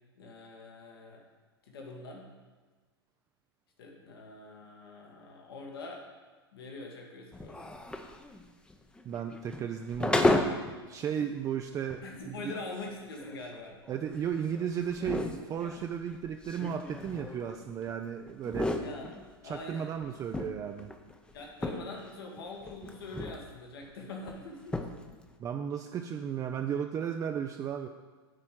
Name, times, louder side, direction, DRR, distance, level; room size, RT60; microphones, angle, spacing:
voice 1, 0.2-1.2 1.7-2.3 3.8-6.1 6.5-7.7 12.0-13.8 18.8-19.1 19.4-19.9 21.3-24.8, left 3 dB, 65° left, 0 dB, 1.5 m, -44 dB
sound 1, 7.3-10.8 11.2-11.3 11.9-12.0 12.5-17.9 18.3-19.6 20.0-22.1 22.4-23.5 23.8-23.9 24.2-24.4 24.6-25.2, left 2 dB, 5° left, 0.7 m, -34 dB
voice 2, 9.0-10.4 10.9-12.5 13.9-18.7 19.4-20.9 25.4-27.9, right 8 dB, 25° right, 5 dB, 0.5 m, -35 dB
9.7 x 4.3 x 7.6 m, 1.4 s
figure-of-eight pair, 95°, 13 cm